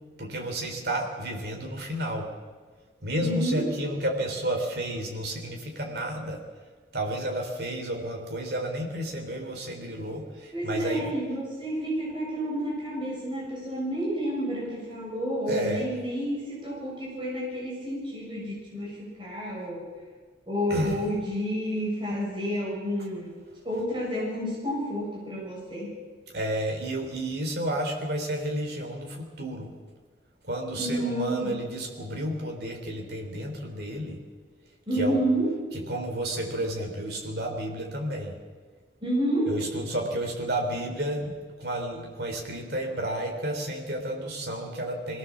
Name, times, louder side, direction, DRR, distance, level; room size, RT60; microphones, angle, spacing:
voice 1, 0.2-2.3 3.0-6.4 6.9-11.1 15.5-15.9 20.7-21.0 26.3-29.7 30.5-34.2 35.0-35.2 35.7-38.3 39.5-41.3 41.6-45.2, right 1 dB, 60° right, 1 dB, 3.7 m, -31 dB
voice 2, 3.2-3.7 10.5-19.8 20.5-23.4 23.6-25.9 30.8-31.6 34.9-35.5 39.0-39.5, equal, 25° right, -5 dB, 6.7 m, -30 dB
23.5 x 17.0 x 7.4 m, 1.5 s
head